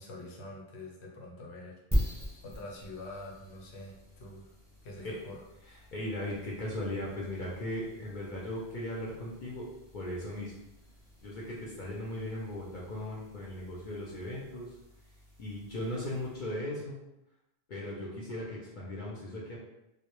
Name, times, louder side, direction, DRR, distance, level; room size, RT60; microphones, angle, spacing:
voice 1, 0.0-2.1 2.4-4.5 4.8-5.4, left 2 dB, 80° left, -1 dB, 0.9 m, -45 dB
sound 1, 1.9-16.6, equal, 10° right, 0.9 m, -41 dB
voice 2, 5.9-9.6 9.9-10.5 11.2-14.7 15.4-17.0 17.7-19.6, left 1 dB, 55° left, -5 dB, 0.6 m, -37 dB
2.1 x 2.0 x 2.9 m, 0.90 s
omnidirectional pair, 1.1 m